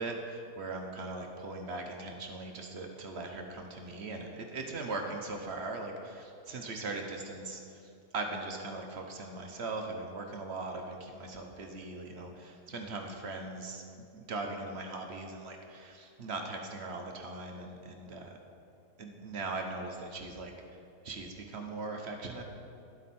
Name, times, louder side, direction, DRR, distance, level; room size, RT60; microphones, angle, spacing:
voice 1, 0.0-13.8 14.1-18.3 19.0-20.5 21.0-22.4, right 3 dB, 45° right, 3 dB, 1.0 m, -40 dB
11.5 x 7.8 x 4.3 m, 2.6 s
omnidirectional pair, 1.7 m